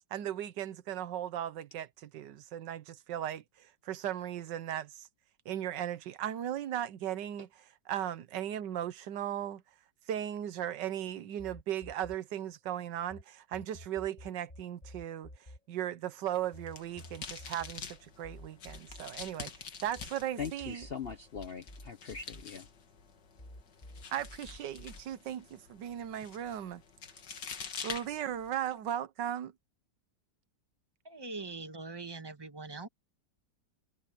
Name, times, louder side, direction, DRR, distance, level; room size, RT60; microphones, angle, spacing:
voice 1, 0.1-5.1 5.4-9.6 10.1-15.3 15.7-19.5 19.8-20.9 24.1-26.8 27.8-29.5, right 11 dB, 90° right, 1.5 m, -37 dB
sound 1, 11.4-13.2 13.5-20.1 20.4-23.1 23.4-25.0, left 1 dB, 25° left, 7.8 m, -51 dB
sound 2, 16.4-28.7, left 6 dB, 75° left, 2.4 m, -47 dB
voice 2, 20.4-22.7, left 6 dB, 50° left, 0.7 m, -41 dB
voice 3, 31.0-32.9, right 3 dB, 15° right, 1.1 m, -42 dB
omnidirectional pair, 1.9 m